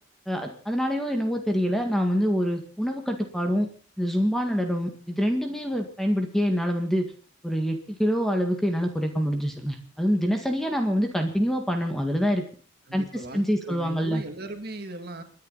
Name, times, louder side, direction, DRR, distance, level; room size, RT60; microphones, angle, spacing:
voice 1, 0.3-3.7 4.0-7.0 7.4-12.4 12.9-14.2, equal, ahead, 4 dB, 1.7 m, -26 dB
voice 2, 12.9-15.2, right 2 dB, 50° right, 6 dB, 2.3 m, -38 dB
30.0 x 10.5 x 4.1 m, 0.39 s
head